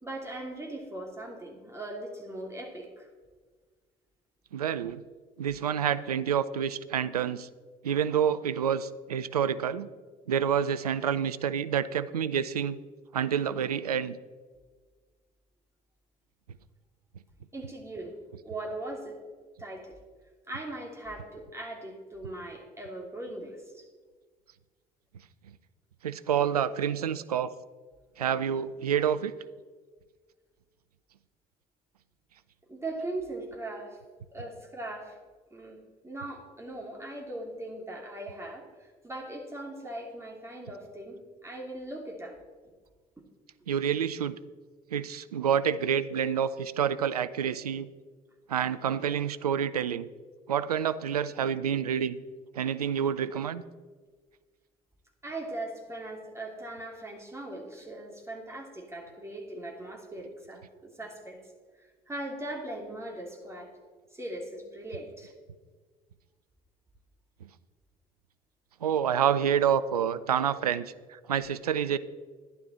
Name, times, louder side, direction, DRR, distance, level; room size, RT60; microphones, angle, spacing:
voice 1, 0.0-3.1 17.5-18.2 18.4-19.2 19.6-20.0 20.5-23.8 32.7-34.0 34.3-35.2 35.5-42.4 55.2-61.4 61.8-63.7 64.1-65.3, right 1 dB, 15° right, 0 dB, 3.1 m, -40 dB
voice 2, 4.5-5.0 5.4-7.5 7.8-9.9 10.3-12.8 13.1-14.2 26.0-27.5 28.2-29.3 43.7-44.4 44.9-47.9 48.5-50.1 50.5-52.2 52.5-53.6 68.8-72.0, right 8 dB, 85° right, 15 dB, 0.4 m, -28 dB
12.0 x 11.0 x 4.3 m, 1.5 s
figure-of-eight pair, 55°, 19 cm